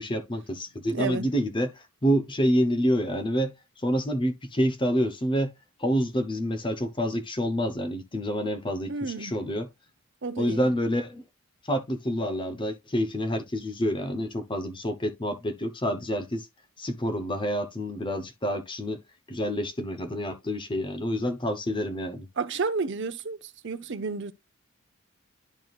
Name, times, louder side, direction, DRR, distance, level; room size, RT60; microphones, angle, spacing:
voice 1, 0.0-5.5 5.8-9.7 10.4-11.2 11.6-16.5 16.8-19.0 19.3-22.3, equal, 20° left, 0.8 m, -28 dB
voice 2, 0.9-1.3 8.9-9.3 10.2-10.7 22.4-24.3, right 4 dB, 55° right, 0.7 m, -31 dB
11.0 x 4.5 x 2.4 m
head